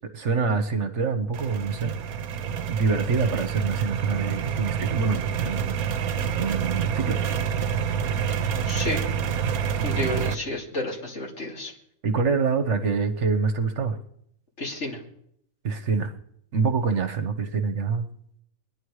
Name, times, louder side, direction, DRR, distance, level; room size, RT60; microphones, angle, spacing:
voice 1, 0.1-1.9 2.7-7.2 12.0-14.0 15.6-16.1 16.5-18.1, right 5 dB, 55° right, 7 dB, 1.4 m, -26 dB
sound 1, 1.3-10.3, right 7 dB, 85° right, 1.2 m, -27 dB
voice 2, 8.3-9.0 9.8-11.7 14.6-15.0, left 1 dB, 55° left, 0 dB, 2.9 m, -31 dB
22.5 x 10.5 x 4.9 m, 0.71 s
omnidirectional pair, 1.5 m